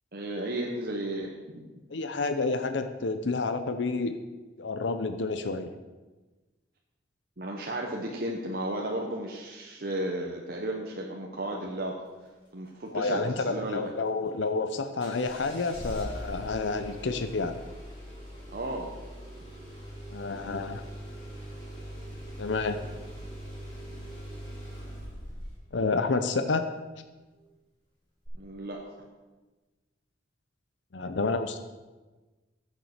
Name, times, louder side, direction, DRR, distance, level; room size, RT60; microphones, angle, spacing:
voice 1, 0.1-1.6 7.4-12.0 12.5-13.9 18.5-18.9 28.4-28.8, right 1 dB, 55° right, -1 dB, 1.0 m, -34 dB
voice 2, 1.9-4.2 4.6-5.7 12.9-17.6 20.1-20.8 22.4-22.8 25.7-26.6 30.9-31.6, left 3 dB, 80° left, 9 dB, 0.7 m, -29 dB
Engine starting, 15.0-25.6 28.2-28.3, equal, 25° left, 3.8 m, -42 dB
9.4 x 7.5 x 6.5 m, 1.2 s
head